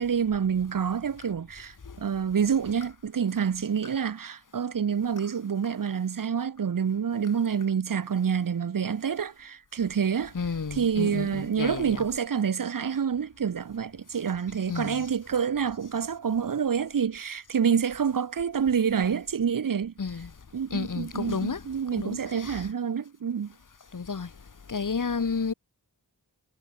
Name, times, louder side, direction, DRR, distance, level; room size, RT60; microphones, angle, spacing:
voice 1, 0.0-10.3 10.7-19.9 20.5-23.5, right 7 dB, 55° right, 0.8 m, -27 dB
voice 2, 10.3-12.0 14.7-15.0 20.0-20.3 20.7-21.6 21.9-22.6 23.9-24.3 24.7-25.5, left 5 dB, 50° left, 1.4 m, -31 dB
wide cardioid pair, 70°, 41 cm